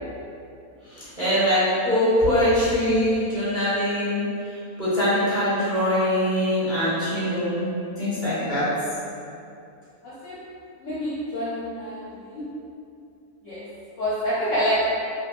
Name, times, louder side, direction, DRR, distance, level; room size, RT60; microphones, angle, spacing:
voice 1, 1.2-4.3 4.8-7.7 8.0-8.7, equal, 10° left, -11 dB, 1.0 m, -22 dB
voice 2, 10.0-10.4 10.8-12.0 12.3-12.4 13.4-13.6 14.0-14.7, equal, 65° left, -9 dB, 0.8 m, -27 dB
3.4 x 2.6 x 2.4 m, 2.6 s
omnidirectional pair, 1.6 m